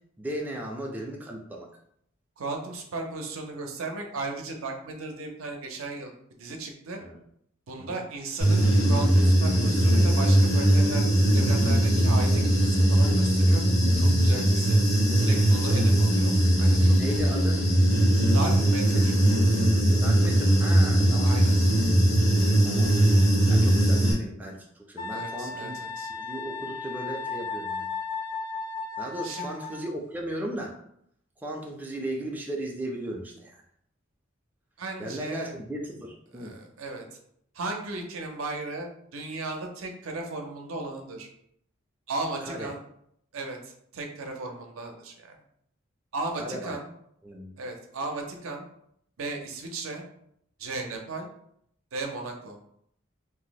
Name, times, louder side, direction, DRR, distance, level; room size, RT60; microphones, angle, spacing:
voice 1, 0.2-1.7 7.0-7.2 7.8-8.0 15.7-15.8 16.9-17.6 18.9-19.3 20.0-21.3 22.6-23.2 23.5-25.8 26.1-27.9 29.0-30.8 31.4-33.6 35.0-36.5 42.4-42.7 46.4-46.8 47.2-47.5, right 1 dB, 10° right, -1 dB, 0.4 m, -36 dB
voice 2, 2.4-6.1 6.4-7.0 7.7-13.6 14.0-14.8 15.3-17.4 18.3-19.1 21.2-21.6 25.1-26.1 29.2-29.8 34.8-35.5 36.3-37.0 37.5-41.3 42.1-42.8 43.3-45.3 46.1-46.9 47.6-48.6 49.2-50.0 50.6-51.3 51.9-52.6, right 3 dB, 80° right, 2 dB, 0.6 m, -36 dB
Human voice / Buzz, 8.4-24.1, right 1 dB, 80° left, 1.3 m, -20 dB
Wind instrument woodwind instrument, 25.0-30.0, left 4 dB, 45° left, 0.6 m, -35 dB
2.6 x 2.0 x 3.9 m, 0.71 s
head